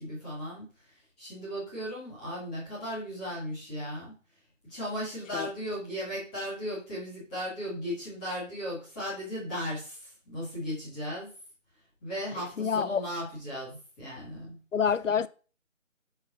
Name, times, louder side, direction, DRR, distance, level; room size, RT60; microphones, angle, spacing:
voice 1, 0.0-4.1 4.6-11.3 12.0-14.6, equal, 5° left, 1.5 m, -36 dB
voice 2, 12.6-13.0 14.7-15.3, left 7 dB, 70° left, 0.6 m, -27 dB
5.6 x 5.6 x 3.7 m
figure-of-eight pair, 165°, 39 cm